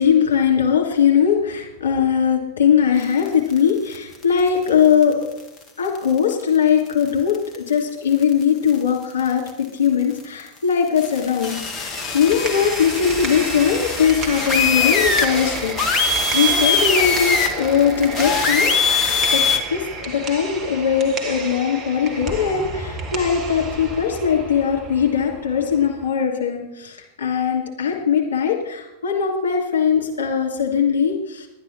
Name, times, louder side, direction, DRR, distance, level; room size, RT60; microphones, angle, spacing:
voice 1, 0.0-5.1 5.8-9.4 9.7-15.7 16.0-19.4 19.7-31.5, left 7 dB, 65° left, 0 dB, 2.7 m, -20 dB
sound 1, 3.3-4.0 4.2-4.4 4.7-4.8 5.0-5.1 6.0-6.3 6.9-7.0 7.3-7.6 8.2-8.4 8.7-8.8 9.2-9.5 10.9-19.6, left 4 dB, 25° left, 1.5 m, -22 dB
sound 2, 12.1-26.1, right 3 dB, 20° right, 1.7 m, -32 dB
11.5 x 9.7 x 5.9 m, 0.85 s
figure-of-eight pair, 90°, 0 cm